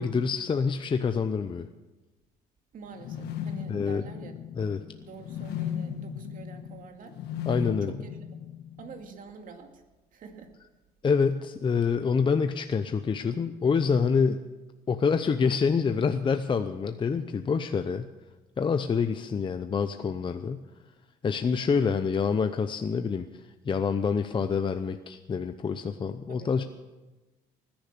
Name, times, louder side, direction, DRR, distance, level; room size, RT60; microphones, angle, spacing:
voice 1, 0.0-1.7 3.7-4.0 4.6-4.8 7.5-7.9 11.0-14.4 14.9-18.1 18.6-20.6 21.2-26.6, left 5 dB, 30° left, 8 dB, 0.7 m, -27 dB
voice 2, 2.7-4.4 5.0-7.2 7.5-8.5 8.8-9.8 10.1-10.5 26.3-26.7, right 5 dB, 55° right, 5 dB, 2.3 m, -46 dB
sound 1, 2.9-9.0, left 8 dB, 75° left, 1.6 m, -36 dB
19.5 x 10.5 x 6.7 m, 1.1 s
cardioid pair, 110°, 17 cm